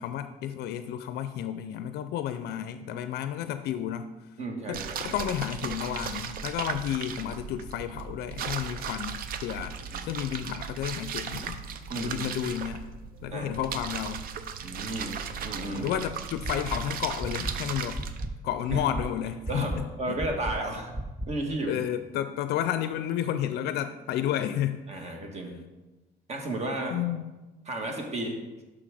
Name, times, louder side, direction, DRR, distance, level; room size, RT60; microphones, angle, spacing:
voice 1, 0.0-4.1 4.7-11.6 12.0-12.8 13.2-14.3 15.7-18.0 18.4-20.2 21.7-25.1 26.9-27.2, left 10 dB, 75° left, 10 dB, 0.4 m, -32 dB
voice 2, 4.4-5.2 9.5-9.6 9.9-10.0 11.9-12.3 13.3-13.5 14.6-15.2 15.4-15.9 18.7-18.9 19.5-20.9 21.3-21.8 24.9-25.5 26.3-27.0 27.7-28.4, right 1 dB, 40° right, 2 dB, 1.4 m, -33 dB
sound 1, 4.7-18.3, right 7 dB, 60° right, 0.6 m, -37 dB
sound 2, 16.4-16.8 17.2-17.5 17.9-18.3 18.7-19.0 19.4-19.8 20.2-20.5 20.9-21.3, right 1 dB, 10° right, 0.5 m, -33 dB
6.2 x 5.8 x 4.9 m, 1.1 s
cardioid pair, 110°, 17 cm